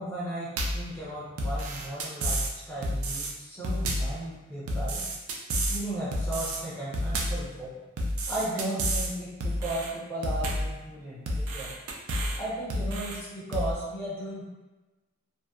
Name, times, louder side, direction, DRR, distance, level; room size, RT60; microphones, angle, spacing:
voice 1, 0.0-2.4 2.7-5.0 5.7-7.7 8.3-11.7 12.4-14.4, right 1 dB, 10° left, -8 dB, 0.7 m, -35 dB
sound 1, 0.6-0.9 1.4-2.5 2.8-3.3 3.6-4.2 4.7-5.8 6.1-6.6 6.9-7.5 8.0-9.1 9.4-9.9 10.2-10.7 11.3-12.4 12.7-13.2 13.5-13.7, right 1 dB, 80° right, 0.4 m, -30 dB
2.6 x 2.2 x 2.3 m, 1.1 s
head